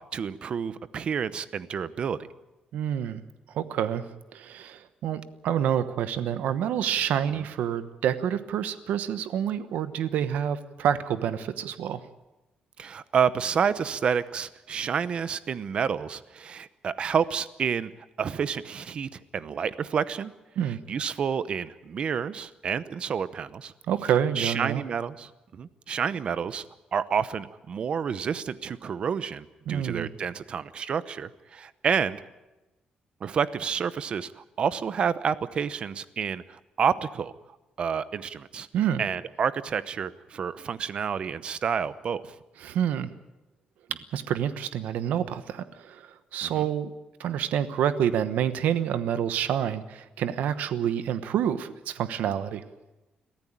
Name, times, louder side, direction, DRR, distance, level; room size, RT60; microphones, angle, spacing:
voice 1, 0.1-2.2 7.4-7.5 12.8-17.9 18.2-20.3 20.9-23.7 24.4-26.6 26.9-32.2 33.2-37.3 37.8-38.7 39.0-42.3 46.4-46.7, right 7 dB, 45° right, 15 dB, 0.8 m, -29 dB
voice 2, 2.7-3.2 3.5-4.0 4.3-12.0 20.6-20.8 23.9-24.8 29.7-30.1 38.7-39.0 42.6-43.1 44.1-46.9 47.2-52.6, right 9 dB, 85° right, 12 dB, 1.1 m, -28 dB
23.0 x 15.0 x 8.7 m, 1.1 s
cardioid pair, 155°, 3 cm